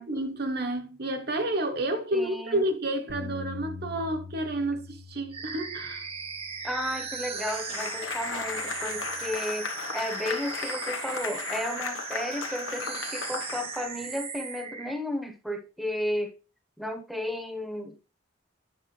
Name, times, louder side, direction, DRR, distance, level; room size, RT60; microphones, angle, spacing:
voice 1, 0.0-6.0, right 1 dB, 50° right, 1.0 m, -30 dB
voice 2, 2.1-2.6 6.6-16.3 16.8-18.0, left 1 dB, ahead, 0.9 m, -33 dB
Bass guitar, 3.1-7.6 8.2-9.3, left 4 dB, 90° right, 1.5 m, -44 dB
sound 1, 5.3-15.0, right 5 dB, 30° right, 0.8 m, -37 dB
sound 2, 7.3-14.1, left 5 dB, 85° left, 1.2 m, -36 dB
9.4 x 6.7 x 3.1 m
head